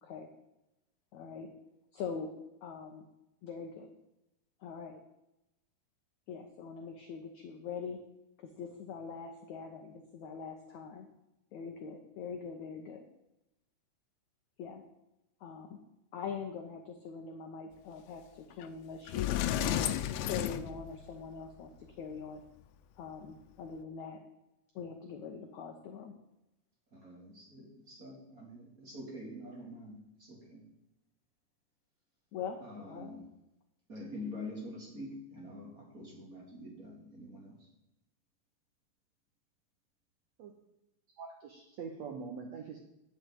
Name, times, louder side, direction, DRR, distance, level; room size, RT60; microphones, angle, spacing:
voice 1, 1.1-1.5 1.9-2.3 2.6-3.1 3.4-3.9 4.6-5.0 6.3-8.0 8.4-11.1 11.5-13.0 14.6-14.8 15.4-15.8 16.1-19.8 20.2-21.7 22.0-22.4 23.0-24.2 24.7-26.1 32.3-33.2, left 6 dB, 75° left, 4 dB, 1.7 m, -43 dB
Sliding door, 18.6-18.7 19.1-21.3, left 11 dB, 90° left, 2.8 m, -32 dB
voice 2, 26.9-30.6 32.6-33.2 33.9-37.7, left 1 dB, 25° right, -1 dB, 2.8 m, -46 dB
voice 3, 41.2-42.8, right 5 dB, 90° right, 3 dB, 1.5 m, -43 dB
10.5 x 7.3 x 9.1 m, 0.91 s
omnidirectional pair, 4.7 m